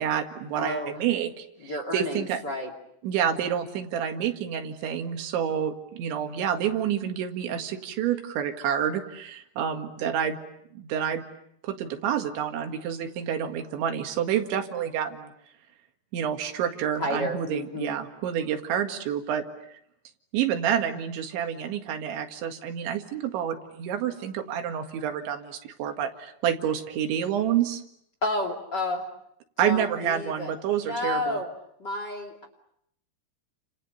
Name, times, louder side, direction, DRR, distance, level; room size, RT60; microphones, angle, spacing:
voice 1, 0.0-2.4 3.0-10.4 10.7-11.2 11.6-15.3 16.1-19.4 20.3-27.8 29.6-31.4, right 9 dB, 85° right, 5 dB, 4.2 m, -28 dB
voice 2, 0.5-0.9 1.6-2.7 17.0-17.9 28.2-29.1 29.6-31.5 31.8-32.5, left 1 dB, 30° left, 5 dB, 2.4 m, -31 dB
29.5 x 28.5 x 6.9 m, 0.74 s
omnidirectional pair, 5.1 m